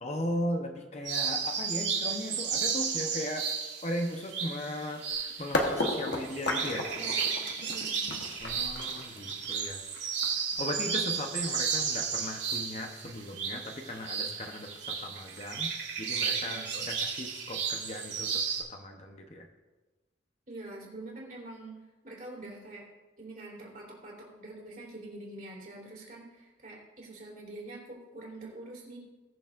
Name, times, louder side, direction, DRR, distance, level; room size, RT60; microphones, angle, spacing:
voice 1, 0.0-3.5 3.8-6.9 8.4-9.8 10.6-15.7 16.0-18.4 18.7-19.5, left 1 dB, 35° left, 3 dB, 0.9 m, -37 dB
sound 1, 1.1-18.6, right 6 dB, 75° right, 2.6 m, -33 dB
sound 2, 5.1-5.2 5.5-11.4, left 2 dB, 65° left, 1.2 m, -34 dB
voice 2, 6.9-8.2 16.4-16.7 20.5-21.8 22.0-22.8 23.2-29.0, right 2 dB, 45° right, -3 dB, 3.4 m, -45 dB
20.5 x 6.9 x 2.6 m, 1.2 s
head